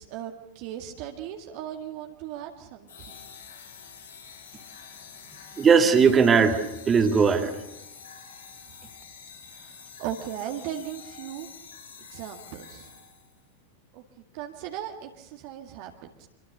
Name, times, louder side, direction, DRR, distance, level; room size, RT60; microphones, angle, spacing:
voice 1, 0.0-3.3 9.5-11.5 12.0-13.0 13.9-14.0 14.3-16.3, right 10 dB, 45° right, 3 dB, 1.9 m, -38 dB
sound 1, 2.9-13.4, left 6 dB, 70° left, 7.4 m, -47 dB
voice 2, 5.6-7.6, right 6 dB, 20° right, 6 dB, 2.5 m, -19 dB
25.5 x 22.5 x 6.7 m, 0.93 s
figure-of-eight pair, 90°, 0 cm